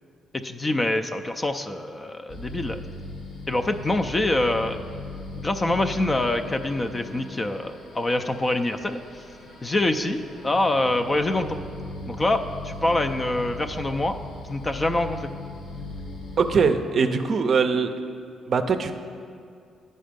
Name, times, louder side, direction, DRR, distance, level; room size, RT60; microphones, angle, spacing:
voice 1, 0.3-2.8 3.5-4.8 5.3-9.0 9.6-11.6 12.1-14.2 14.5-15.3, left 2 dB, 25° left, 7 dB, 0.4 m, -25 dB
sound 1, 2.3-16.6, left 2 dB, 60° left, 1.3 m, -38 dB
voice 2, 16.4-17.9 18.5-18.9, right 5 dB, 50° right, 8 dB, 0.5 m, -21 dB
9.2 x 5.4 x 5.1 m, 2.4 s
cardioid pair, 90°, 0 cm